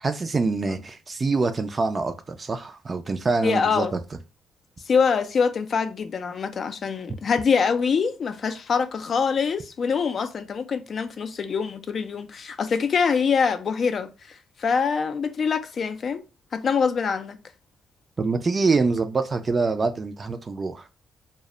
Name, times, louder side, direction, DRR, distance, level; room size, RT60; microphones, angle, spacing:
voice 1, 0.0-4.0 18.2-20.9, right 4 dB, 35° right, 0.3 m, -25 dB
voice 2, 3.4-3.9 4.9-16.2 16.5-17.4, left 6 dB, 50° left, 0.3 m, -24 dB
2.1 x 2.0 x 3.6 m
cardioid pair, 90°, 0 cm